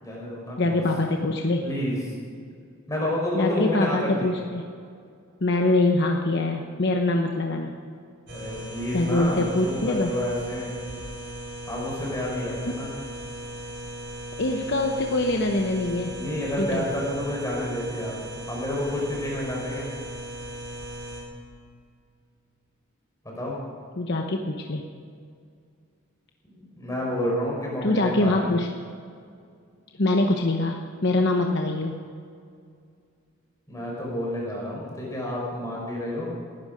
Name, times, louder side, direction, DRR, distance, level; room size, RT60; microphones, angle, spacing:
voice 1, 0.0-0.8 1.6-2.0 2.9-4.3 8.3-10.7 11.7-12.9 16.1-18.2 18.4-19.9 23.2-23.6 26.4-28.5 33.7-36.3, left 1 dB, 15° left, -3 dB, 4.8 m, -29 dB
voice 2, 0.6-1.6 3.3-4.6 5.4-7.7 8.9-10.1 14.4-16.1 16.6-16.8 24.0-24.8 27.8-28.7 30.0-32.0, left 2 dB, 55° left, 2 dB, 1.0 m, -24 dB
sound 1, 8.3-21.2, right 1 dB, 50° right, 4.4 m, -37 dB
19.0 x 12.0 x 5.2 m, 2.3 s
head